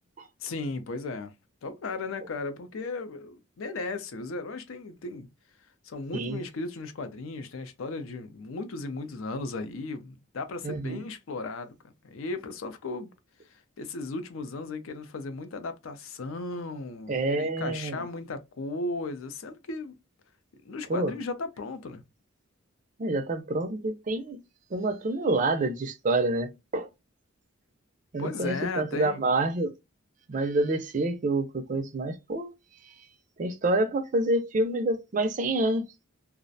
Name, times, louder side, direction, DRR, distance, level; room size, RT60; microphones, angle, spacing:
voice 1, 0.4-1.3 1.6-5.3 5.8-11.7 12.0-13.1 13.8-19.9 20.6-22.0 28.2-29.3, left 3 dB, 75° left, 0.5 m, -36 dB
voice 2, 10.6-11.0 17.1-18.0 20.9-21.1 23.0-24.4 24.7-26.9 28.1-29.7 30.3-32.5 32.8-32.9 33.4-35.9, right 2 dB, 40° right, 0.4 m, -27 dB
2.4 x 2.0 x 2.6 m
head